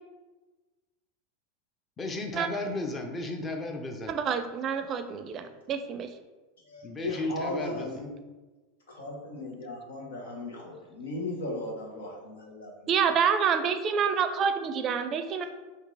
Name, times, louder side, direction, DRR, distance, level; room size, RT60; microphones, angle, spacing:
voice 1, 2.0-4.1 6.8-8.0, left 2 dB, 25° left, 4 dB, 0.7 m, -34 dB
voice 2, 4.1-6.1 12.9-15.5, right 7 dB, 40° right, 9 dB, 0.4 m, -27 dB
voice 3, 6.6-8.1 8.9-12.9, left 2 dB, 90° left, -1 dB, 1.2 m, -37 dB
3.7 x 2.7 x 4.8 m, 1.2 s
hypercardioid pair, 105°, 0 cm